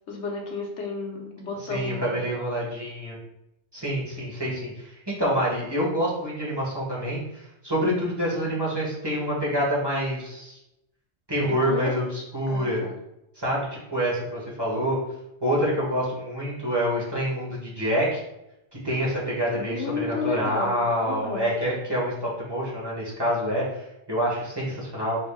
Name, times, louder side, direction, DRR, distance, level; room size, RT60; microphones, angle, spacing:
voice 1, 0.1-2.3 11.5-11.9 12.5-12.9 19.5-21.5, left 4 dB, 90° left, -1 dB, 1.3 m, -32 dB
voice 2, 1.7-3.2 3.7-10.6 11.3-12.8 13.4-15.0 15.4-18.2 18.8-25.2, equal, 20° right, -6 dB, 1.6 m, -27 dB
5.1 x 4.1 x 2.3 m, 0.87 s
omnidirectional pair, 1.2 m